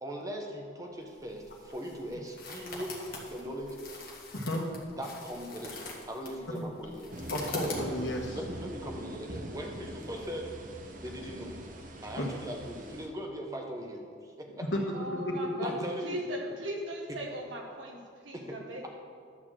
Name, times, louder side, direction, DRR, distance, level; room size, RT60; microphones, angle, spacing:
voice 1, 0.0-3.8 5.0-5.7 6.1-7.1 8.3-10.5 11.0-11.6 12.0-14.7 15.6-16.2 17.1-17.2 18.3-18.6, equal, 15° right, 1 dB, 1.1 m, -40 dB
sound 1, 1.1-8.3, left 3 dB, 50° left, 1.5 m, -44 dB
voice 2, 4.3-4.7 6.5-6.7 7.3-8.4 12.2-12.3 14.7-14.8 15.1-15.2 15.7-15.8, left 1 dB, 65° left, 0 dB, 1.5 m, -32 dB
sound 2, 7.1-13.1, right 1 dB, 40° right, 0.8 m, -43 dB
voice 3, 14.9-15.7 16.0-18.9, equal, 75° right, 0 dB, 1.5 m, -38 dB
11.5 x 4.4 x 7.5 m, 2.1 s
head